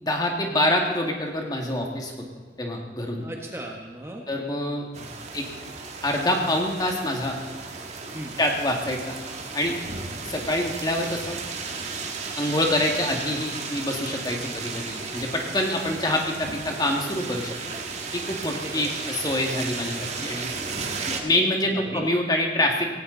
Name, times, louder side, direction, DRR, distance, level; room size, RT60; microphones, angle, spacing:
voice 1, 0.0-2.1 2.6-3.3 4.3-5.5 6.0-7.4 8.4-9.2 9.5-9.8 10.2-11.4 12.4-17.6 18.1-20.5 21.0-22.9, left 1 dB, 25° left, 1 dB, 2.2 m, -26 dB
voice 2, 3.2-4.2 8.1-8.4 18.4-18.9 21.0-21.4 21.7-22.1, right 1 dB, 15° right, 0 dB, 1.5 m, -37 dB
sound 1, 4.9-21.2, right 4 dB, 40° right, 1.7 m, -34 dB
18.0 x 17.0 x 4.1 m, 1.5 s
head